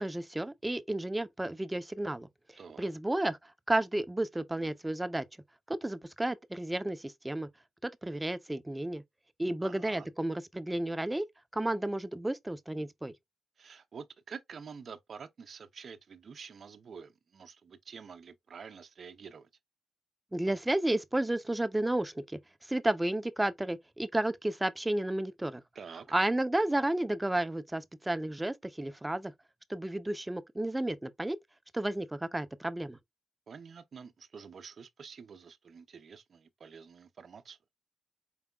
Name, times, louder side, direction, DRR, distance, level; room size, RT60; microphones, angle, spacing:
voice 1, 0.0-2.3 2.8-5.3 5.7-7.5 7.8-9.0 9.4-11.3 11.5-13.1 20.3-25.6 26.1-29.3 29.7-31.4 31.7-33.0, right 1 dB, 15° right, 0.5 m, -32 dB
voice 2, 2.6-2.9 9.6-10.1 13.6-19.5 25.7-26.1 33.5-37.6, right 6 dB, 60° right, 0.6 m, -48 dB
4.6 x 3.4 x 2.2 m
cardioid pair, 60°, 0 cm